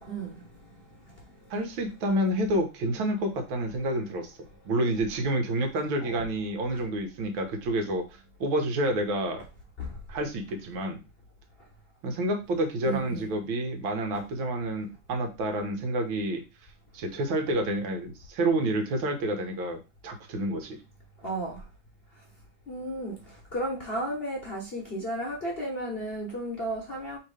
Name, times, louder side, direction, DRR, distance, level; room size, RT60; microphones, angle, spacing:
voice 1, 0.0-0.4 6.0-6.3 9.8-9.9 12.8-13.3 14.1-14.2 21.2-21.6 22.7-23.2 23.5-27.2, right 1 dB, 40° left, 0.9 m, -33 dB
voice 2, 1.5-4.3 4.7-9.4 10.1-11.0 12.0-16.4 16.9-20.8, right 1 dB, 85° right, 1.8 m, -29 dB
3.7 x 2.9 x 4.8 m
omnidirectional pair, 2.2 m